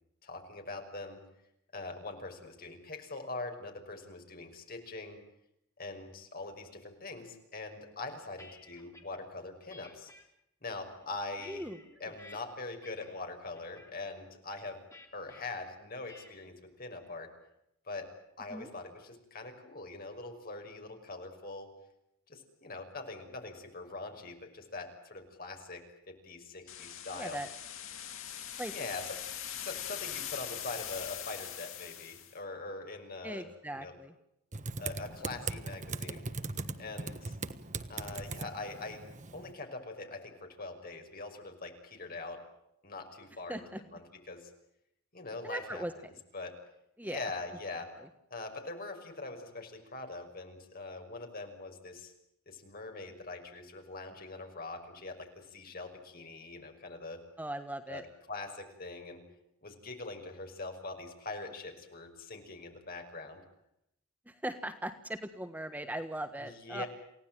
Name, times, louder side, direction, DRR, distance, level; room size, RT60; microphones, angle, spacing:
voice 1, 0.2-1.2 1.7-5.2 5.8-10.1 10.6-11.6 12.0-14.8 15.1-17.3 17.8-18.1 18.4-21.7 22.3-27.4 28.7-29.1 29.5-33.5 33.7-34.0 34.8-36.2 36.8-37.4 37.9-39.0 39.3-42.4 42.8-43.6 43.9-44.5 45.1-45.8 46.3-46.5 47.0-47.9 48.3-52.1 52.5-57.2 57.9-58.0 58.3-59.2 59.6-63.4 66.4-66.9, left 3 dB, 45° left, 4 dB, 5.8 m, -43 dB
sound 1, 8.0-9.2 9.7-10.2 10.8-12.4 12.8-13.2 13.5-13.9 14.9-15.4 16.1-16.5, left 2 dB, 15° left, 3.5 m, -55 dB
voice 2, 11.5-11.8 12.1-12.2 18.5-18.7 27.1-27.5 28.6-28.7 33.2-34.1 43.5-43.8 45.4-45.9 47.0-47.2 48.0-48.1 57.4-58.0 64.3-66.8, right 1 dB, 10° right, 8 dB, 1.3 m, -39 dB
sound 2, 26.7-32.3, left 10 dB, 65° left, 4.8 m, -42 dB
Typing, 34.5-39.5, right 3 dB, 35° right, 1.3 m, -39 dB
29.0 x 17.5 x 9.1 m, 0.80 s
head